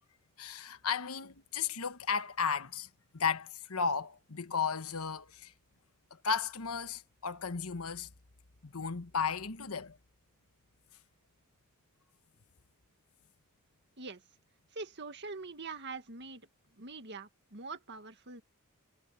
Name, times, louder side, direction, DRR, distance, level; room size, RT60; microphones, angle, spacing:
voice 1, 0.4-2.9 3.1-5.5 6.1-8.1 8.6-10.0, left 6 dB, 80° left, 1.2 m, -34 dB
voice 2, 14.7-16.4 16.8-18.4, right 3 dB, 50° right, 2.0 m, -44 dB
head